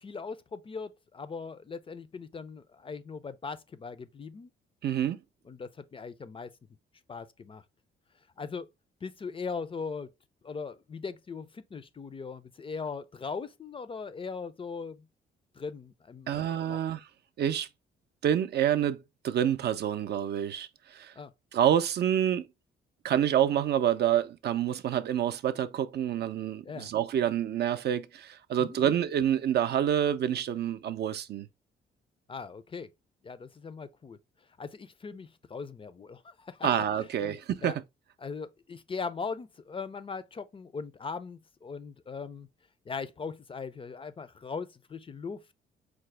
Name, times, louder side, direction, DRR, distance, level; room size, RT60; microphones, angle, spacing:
voice 1, 0.0-4.5 5.5-6.5 7.1-7.6 8.4-8.7 9.0-10.1 10.4-15.1 15.5-16.8 21.1-21.3 26.6-26.9 28.6-28.9 32.3-32.9 33.2-34.2 34.6-36.7 37.2-37.4 37.6-37.8 38.2-42.5 42.9-45.4, left 5 dB, 25° left, 0.4 m, -39 dB
voice 2, 4.8-5.2 16.3-17.0 17.4-17.7 18.2-21.1 21.5-22.5 23.0-31.5 36.6-37.8, right 10 dB, 55° right, 0.4 m, -27 dB
4.8 x 2.0 x 3.2 m
cardioid pair, 90°, 20 cm